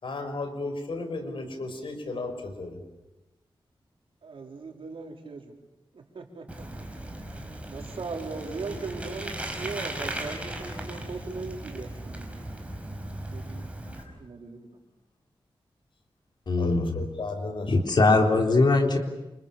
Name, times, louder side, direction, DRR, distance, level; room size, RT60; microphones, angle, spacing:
voice 1, 0.0-2.8 13.0-13.2 13.8-14.2 16.6-18.0 18.2-18.4, left 2 dB, 70° left, 6 dB, 5.2 m, -35 dB
voice 2, 4.2-5.5 5.9-6.9 7.7-12.5 13.3-13.7 14.2-14.7, right 4 dB, 80° right, 2 dB, 4.3 m, -39 dB
Bicycle, 6.5-14.0, right 1 dB, 15° right, 5.2 m, -37 dB
voice 3, 16.5-17.0 17.7-19.0, left 3 dB, 55° left, 2 dB, 4.0 m, -21 dB
29.0 x 27.5 x 7.1 m, 1.0 s
wide cardioid pair, 115°, 9 cm